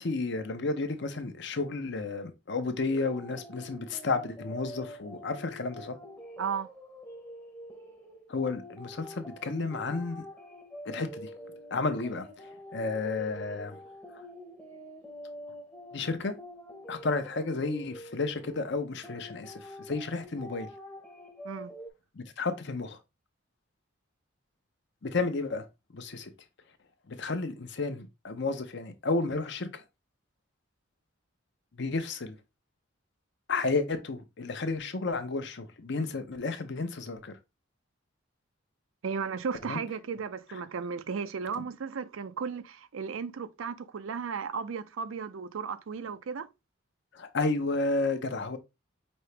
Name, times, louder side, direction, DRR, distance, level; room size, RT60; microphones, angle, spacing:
voice 1, 0.0-6.0 8.3-10.3 10.8-11.3 11.7-13.8 15.9-16.3 16.9-20.7 22.1-23.0 25.0-25.7 25.9-26.3 27.1-29.8 31.8-32.4 33.5-37.4 39.6-39.8 41.6-41.7 47.1-48.6, left 3 dB, 60° left, 0.7 m, -32 dB
sound 1, 2.9-21.9, equal, 10° left, 0.8 m, -46 dB
voice 2, 6.4-6.7 21.4-21.7 39.0-46.5, right 6 dB, 80° right, 0.5 m, -35 dB
5.3 x 2.8 x 3.3 m
head